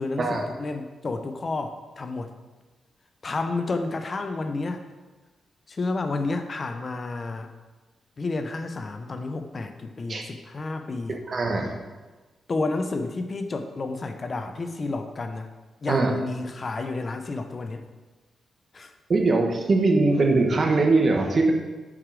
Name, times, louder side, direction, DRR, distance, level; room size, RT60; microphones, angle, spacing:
voice 1, 0.0-2.3 3.2-4.8 5.7-7.5 8.2-11.2 12.5-15.5 15.8-17.8 18.7-18.9, left 3 dB, 45° left, 7 dB, 0.7 m, -30 dB
voice 2, 11.3-11.8 15.9-16.1 19.1-21.5, right 3 dB, 50° right, 3 dB, 1.2 m, -21 dB
7.2 x 5.0 x 4.8 m, 1.2 s
cardioid pair, 60°, 0 cm